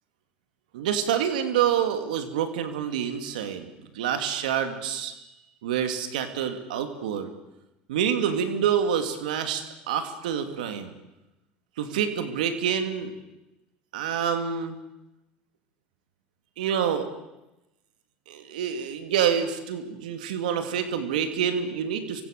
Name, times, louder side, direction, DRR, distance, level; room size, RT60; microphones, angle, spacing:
voice 1, 0.7-5.1 5.6-7.3 7.9-10.9 11.8-13.1 13.9-14.8 16.6-17.1 18.3-22.2, right 8 dB, 85° right, 8 dB, 2.8 m, -27 dB
26.5 x 24.0 x 6.9 m, 0.96 s
hypercardioid pair, 85°, 4 cm